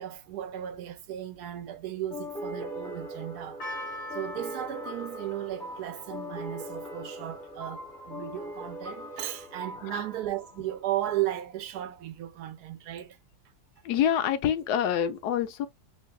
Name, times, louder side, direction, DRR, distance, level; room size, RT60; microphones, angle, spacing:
voice 1, 0.0-3.6 4.1-13.2, right 13 dB, 75° right, 1.1 m, -35 dB
sound 1, 2.1-11.4, equal, 5° left, 0.6 m, -41 dB
Percussion, 3.6-8.6, left 1 dB, 55° left, 1.3 m, -44 dB
voice 2, 13.8-15.7, left 9 dB, 75° left, 1.1 m, -26 dB
6.2 x 2.6 x 2.2 m
omnidirectional pair, 1.8 m